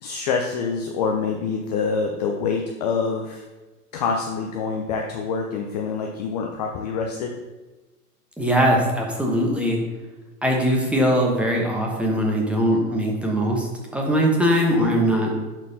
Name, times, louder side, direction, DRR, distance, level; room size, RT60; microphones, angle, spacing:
voice 1, 0.0-3.4 3.9-7.3 14.8-15.1, left 5 dB, 30° left, 2 dB, 0.5 m, -26 dB
voice 2, 8.4-9.8 10.4-13.7 13.9-15.3, equal, 5° right, -1 dB, 0.9 m, -21 dB
10.5 x 4.5 x 2.7 m, 1.2 s
figure-of-eight pair, 110°, 47 cm